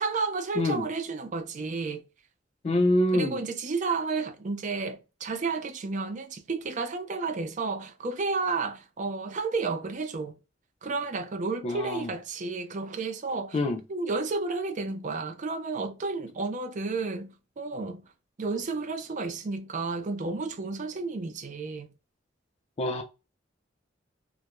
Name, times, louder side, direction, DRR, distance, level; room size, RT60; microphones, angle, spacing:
voice 1, 0.0-2.0 3.1-10.3 10.8-13.6 13.9-18.0 18.4-21.9, right 4 dB, 40° right, 0.4 m, -32 dB
voice 2, 0.6-0.9 2.6-3.4 11.6-12.1 13.5-13.8 22.8-23.0, left 1 dB, 35° left, 0.3 m, -25 dB
2.3 x 2.0 x 2.9 m
head